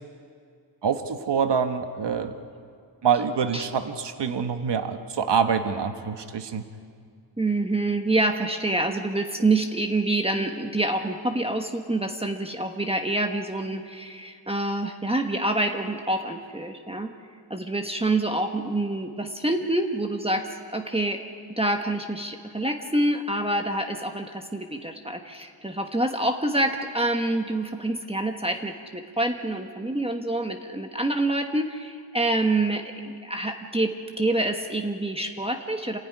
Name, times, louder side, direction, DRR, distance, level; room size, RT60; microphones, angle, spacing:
voice 1, 0.8-2.3 3.0-6.6, right 6 dB, 70° right, 7 dB, 1.4 m, -25 dB
voice 2, 7.4-17.1 17.5-21.2 21.5-36.0, right 2 dB, 15° right, 4 dB, 1.3 m, -27 dB
27.5 x 15.5 x 9.8 m, 2.2 s
wide cardioid pair, 125°, 44 cm